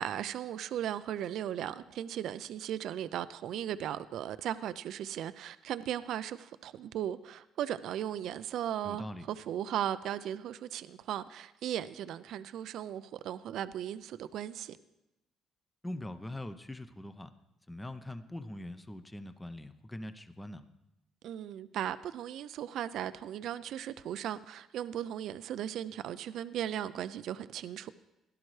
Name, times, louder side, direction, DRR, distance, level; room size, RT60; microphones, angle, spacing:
voice 1, 0.0-14.8 21.2-27.9, right 10 dB, 70° right, 0.4 m, -37 dB
voice 2, 8.8-9.3 15.8-17.3 17.7-20.6, left 1 dB, 10° left, 0.7 m, -42 dB
17.0 x 11.5 x 3.2 m
cardioid pair, 95°, 0 cm